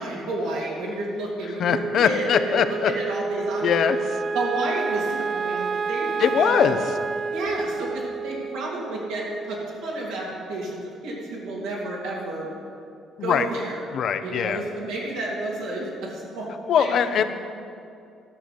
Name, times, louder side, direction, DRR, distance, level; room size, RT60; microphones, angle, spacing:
voice 1, 0.0-4.0 4.3-6.7 7.3-12.5 13.2-13.8 14.2-16.5 16.8-17.2, right 2 dB, 90° right, -4 dB, 2.9 m, -31 dB
voice 2, 1.6-2.9 3.6-4.0 6.2-6.8 13.2-13.5 13.9-14.6 16.7-17.2, left 8 dB, 60° left, 9 dB, 0.7 m, -21 dB
Wind instrument woodwind instrument, 1.7-10.1, right 5 dB, 40° right, 0.4 m, -30 dB
12.0 x 6.0 x 8.3 m, 2.5 s
supercardioid pair, 80°, 0 cm